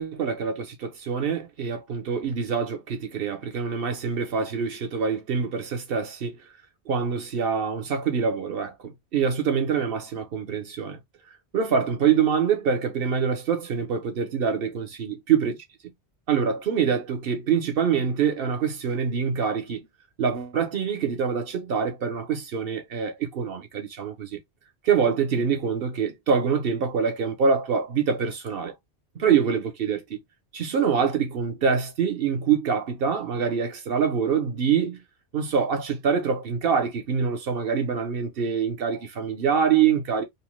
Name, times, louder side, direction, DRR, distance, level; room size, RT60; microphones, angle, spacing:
voice 1, 0.0-6.4 6.9-11.0 11.5-15.6 15.8-15.9 16.3-19.9 20.2-24.4 24.8-28.7 29.2-30.2 30.5-35.0 35.3-40.2, right 6 dB, 60° right, 1.0 m, -25 dB
2.9 x 2.1 x 3.1 m
omnidirectional pair, 1.1 m